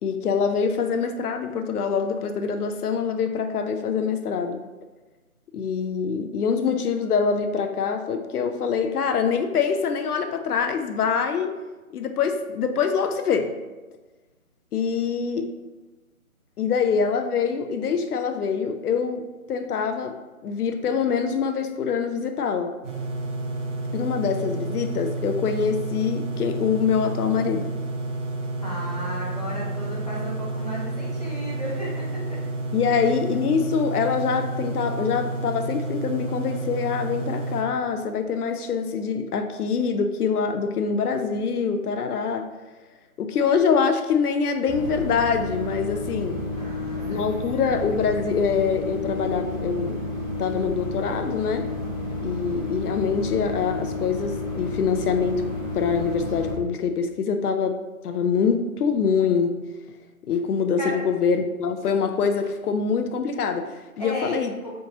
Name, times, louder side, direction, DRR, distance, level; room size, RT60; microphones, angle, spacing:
voice 1, 0.0-4.6 5.5-11.6 11.9-13.6 14.7-15.5 16.6-20.2 20.4-22.7 23.9-27.7 32.7-42.5 43.2-46.4 47.1-50.1 50.4-51.7 52.2-55.5 55.7-59.6 60.3-64.5, left 6 dB, 85° left, 7 dB, 0.5 m, -24 dB
sound 1, 22.8-37.6, right 2 dB, 60° right, 0.7 m, -30 dB
voice 2, 28.6-32.4 32.8-32.9 46.5-47.2 47.5-47.7 60.8-61.0 64.0-64.7, equal, 30° left, -7 dB, 0.6 m, -34 dB
sound 2, 44.7-56.5, left 2 dB, 20° right, 1.0 m, -31 dB
3.3 x 2.9 x 2.7 m, 1.2 s
hypercardioid pair, 175°, 44 cm